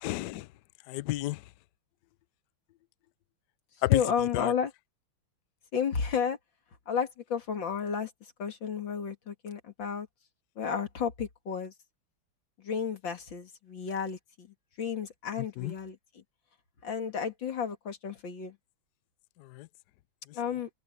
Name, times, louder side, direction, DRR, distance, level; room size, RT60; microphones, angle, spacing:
voice 1, 0.0-0.5 0.9-1.4 3.8-4.5 15.6-15.7 19.4-19.7 20.3-20.4, left 17 dB, 80° left, 0.9 m, -30 dB
voice 2, 3.9-4.7 5.7-6.4 6.9-8.1 8.4-10.1 10.6-11.7 12.6-14.5 14.8-16.0 16.8-18.6 20.3-20.7, left 7 dB, 60° left, 2.9 m, -32 dB
omnidirectional pair, 2.4 m